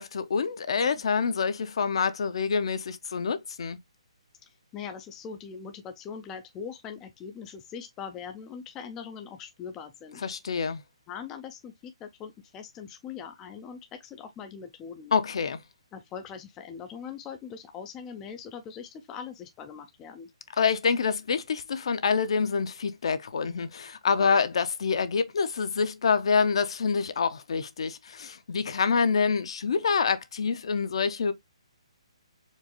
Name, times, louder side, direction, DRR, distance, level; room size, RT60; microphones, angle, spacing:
voice 1, 0.0-3.8 10.2-10.8 15.1-15.6 20.6-31.3, left 5 dB, 55° left, 0.6 m, -26 dB
voice 2, 4.4-10.3 11.1-15.1 15.9-20.3, left 7 dB, 10° left, 0.3 m, -41 dB
4.5 x 2.4 x 2.8 m
hypercardioid pair, 165°, 3 cm